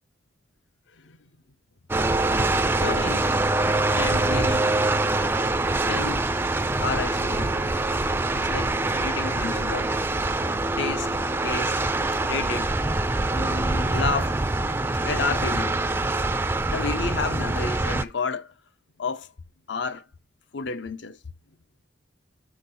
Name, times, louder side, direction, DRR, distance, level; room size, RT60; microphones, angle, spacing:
sound 1, 1.9-18.0, right 2 dB, 10° right, 0.3 m, -24 dB
voice 1, 2.8-3.3 3.9-4.7 5.9-6.3 6.8-7.7 8.3-9.9 10.8-11.2 11.4-11.8 12.2-12.7 13.3-14.4 15.0-15.8 16.7-18.5 19.0-19.3 19.7-20.0 20.5-21.2, left 4 dB, 65° left, 0.6 m, -31 dB
6.2 x 5.1 x 4.1 m
head